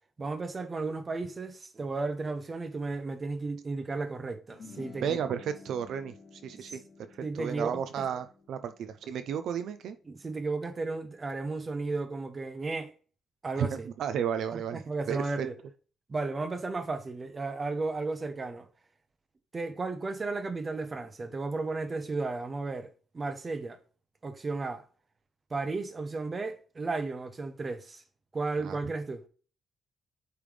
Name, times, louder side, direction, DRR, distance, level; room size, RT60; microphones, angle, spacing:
voice 1, 0.2-5.2 6.7-6.8 7.2-7.7 10.1-12.9 13.4-13.9 14.5-15.5 16.1-18.7 19.5-23.8 24.2-24.8 25.5-28.0 28.3-29.2, right 3 dB, 25° right, 0.8 m, -34 dB
sound 1, 4.5-11.0, left 4 dB, 45° left, 1.9 m, -52 dB
voice 2, 5.0-6.8 7.1-10.0 13.6-14.8 15.1-15.5 28.6-28.8, right 8 dB, 65° right, 0.5 m, -33 dB
8.7 x 3.4 x 3.4 m
cardioid pair, 155°, 0 cm